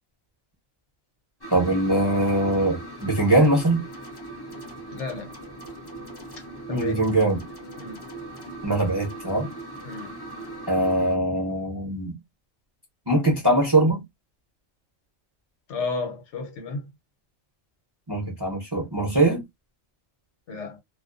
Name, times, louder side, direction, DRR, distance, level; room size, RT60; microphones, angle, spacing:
sound 1, 1.4-11.2, right 1 dB, 30° left, 0.5 m, -40 dB
voice 1, 1.5-3.8 6.7-7.4 8.6-9.5 10.7-12.2 13.1-14.0 18.1-19.4, right 1 dB, 25° right, 0.7 m, -22 dB
voice 2, 4.9-5.3 6.7-7.0 7.8-8.0 9.8-10.2 15.7-16.9 20.5-20.8, left 4 dB, 65° left, 1.0 m, -32 dB
2.4 x 2.3 x 2.3 m
omnidirectional pair, 1.4 m